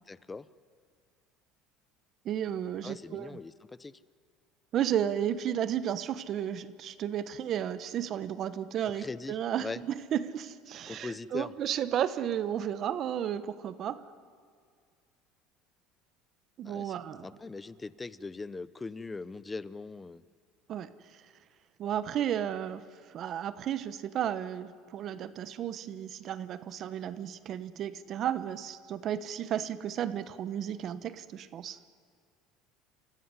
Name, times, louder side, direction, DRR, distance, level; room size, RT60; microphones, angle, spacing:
voice 1, 0.1-0.5 2.8-3.5 3.8-3.9 9.0-9.8 10.9-11.5 16.6-16.9 17.2-20.2, left 3 dB, 15° left, 17 dB, 0.7 m, -40 dB
voice 2, 2.2-3.4 4.7-14.0 16.6-17.3 20.7-20.9 21.8-22.8 23.1-31.8, right 10 dB, 45° right, 13 dB, 1.0 m, -33 dB
29.5 x 15.5 x 9.6 m, 2.1 s
supercardioid pair, 125°, 0 cm